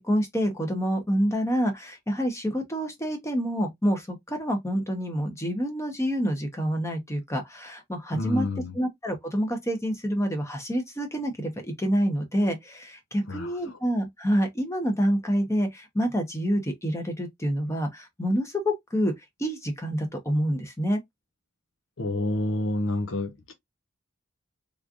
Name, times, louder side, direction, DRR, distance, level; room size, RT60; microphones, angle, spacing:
voice 1, 0.0-8.5 8.7-19.1 19.4-21.0, equal, 15° left, 1.0 m, -27 dB
voice 2, 8.1-8.7 13.3-13.6 22.0-23.5, left 2 dB, 80° left, 0.8 m, -28 dB
3.6 x 3.2 x 2.4 m
head